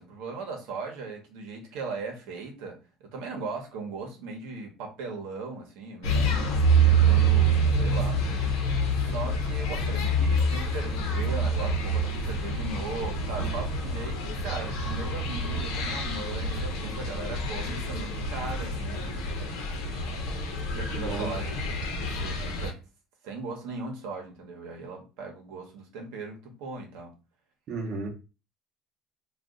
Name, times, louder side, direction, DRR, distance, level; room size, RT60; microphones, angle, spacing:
voice 1, 0.0-6.7 6.9-8.2 8.9-19.3 20.7-21.5 22.0-22.8 23.2-27.1, right 4 dB, 85° right, 2 dB, 0.9 m, -38 dB
sound 1, 6.0-22.7, right 2 dB, 85° left, 0.9 m, -27 dB
voice 2, 20.9-21.3 27.7-28.1, right 3 dB, 55° right, 1 dB, 0.8 m, -33 dB
2.4 x 2.3 x 3.6 m, 0.31 s
cardioid pair, 105°, 0 cm